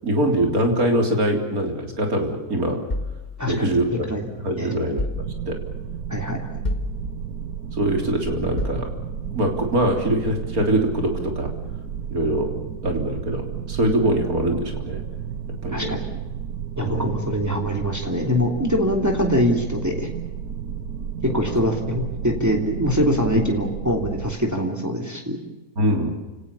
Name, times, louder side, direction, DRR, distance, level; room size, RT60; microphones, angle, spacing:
voice 1, 0.0-2.8 3.4-4.1 4.4-5.6 7.8-8.9 9.3-11.5 12.1-12.5 12.8-15.0 15.6-16.0 16.8-17.1 25.8-26.1, right 1 dB, 65° right, 3 dB, 4.1 m, -23 dB
sound 1, 2.9-4.3 5.0-5.8 6.6-7.5 8.6-9.4, left 2 dB, 30° left, 1.6 m, -31 dB
voice 2, 3.4-3.7 4.1-4.2 4.6-4.7 6.1-6.6 15.7-16.0 16.8-20.1 21.3-25.4, equal, 10° right, 2 dB, 3.0 m, -23 dB
sound 2, 5.1-24.3, right 7 dB, 80° right, 1.6 m, -32 dB
29.5 x 18.0 x 7.0 m, 1.1 s
omnidirectional pair, 1.7 m